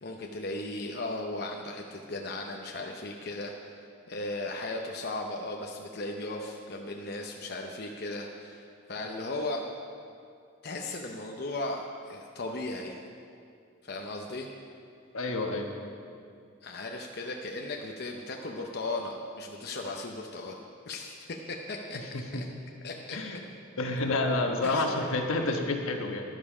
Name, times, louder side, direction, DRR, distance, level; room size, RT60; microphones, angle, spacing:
voice 1, 0.0-3.5 4.1-9.6 10.6-13.0 13.8-14.5 16.6-22.4 22.8-23.2 24.6-25.1, left 2 dB, 50° left, 1 dB, 0.8 m, -37 dB
voice 2, 15.1-15.7 22.1-22.4 23.1-23.4 23.8-26.2, left 2 dB, 85° left, 3 dB, 1.3 m, -29 dB
12.5 x 11.0 x 5.0 m, 2.4 s
head